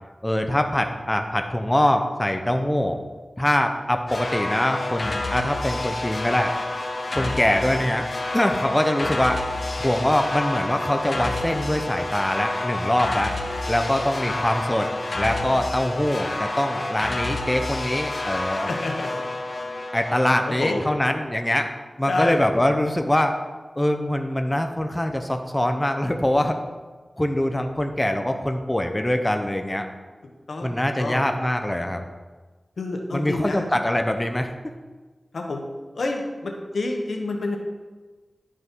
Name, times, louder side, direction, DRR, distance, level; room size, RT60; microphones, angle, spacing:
voice 1, 0.2-3.0 3.4-6.5 7.1-8.0 8.3-9.4 9.8-13.3 13.7-14.9 15.2-18.7 19.9-21.7 22.0-23.3 23.8-26.6 27.2-29.9 30.6-32.0 33.1-34.5, left 1 dB, 15° left, 5 dB, 0.7 m, -23 dB
sound 1, 4.1-20.9, left 2 dB, 50° left, 1.2 m, -29 dB
voice 2, 18.7-19.3 20.5-20.9 22.1-22.4 30.5-31.3 32.8-33.7 35.3-35.6 35.9-37.6, left 2 dB, 85° left, 2 dB, 1.3 m, -28 dB
11.5 x 6.4 x 4.6 m, 1.3 s
wide cardioid pair, 85°, 0 cm